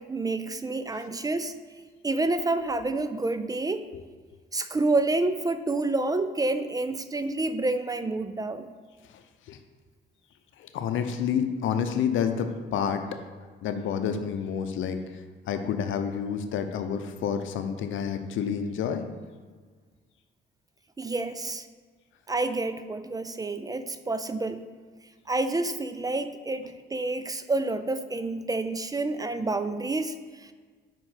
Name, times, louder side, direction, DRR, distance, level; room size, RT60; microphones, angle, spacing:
voice 1, 0.0-1.5 2.0-3.9 4.5-8.7 21.0-21.7 22.3-24.7 25.3-30.5, right 2 dB, 20° right, 10 dB, 0.4 m, -28 dB
voice 2, 9.0-9.6 10.6-13.0 13.6-19.0, left 7 dB, 80° left, 7 dB, 0.7 m, -29 dB
5.3 x 5.0 x 5.7 m, 1.5 s
cardioid pair, 90°, 20 cm